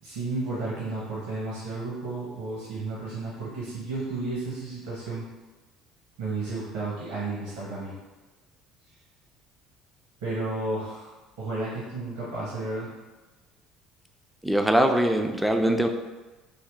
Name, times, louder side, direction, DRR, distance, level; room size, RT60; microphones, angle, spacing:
voice 1, 0.0-5.2 6.2-7.9 10.2-11.1 11.4-12.9, right 2 dB, 65° right, -7 dB, 0.9 m, -32 dB
voice 2, 14.4-15.9, right 1 dB, 5° right, 4 dB, 0.4 m, -22 dB
2.8 x 2.7 x 3.5 m, 1.2 s
figure-of-eight pair, 60°, 0 cm